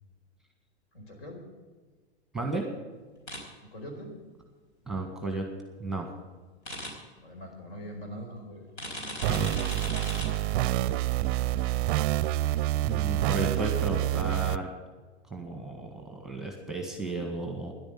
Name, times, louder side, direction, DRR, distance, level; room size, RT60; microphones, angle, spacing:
voice 1, 0.9-1.4 3.7-4.1 6.9-9.7 10.0-11.0, equal, 65° left, 2 dB, 4.8 m, -44 dB
voice 2, 2.3-2.7 4.9-5.5 5.8-6.1 9.3-9.5 12.8-14.7 15.3-17.7, right 2 dB, ahead, 3 dB, 1.7 m, -33 dB
sound 1, 3.3-3.4 6.6-6.9 8.8-10.3, left 1 dB, 85° left, 4.7 m, -37 dB
sound 2, 9.2-14.6, right 15 dB, 50° right, 0.5 m, -27 dB
11.0 x 8.8 x 9.4 m, 1.4 s
hypercardioid pair, 125°, 34 cm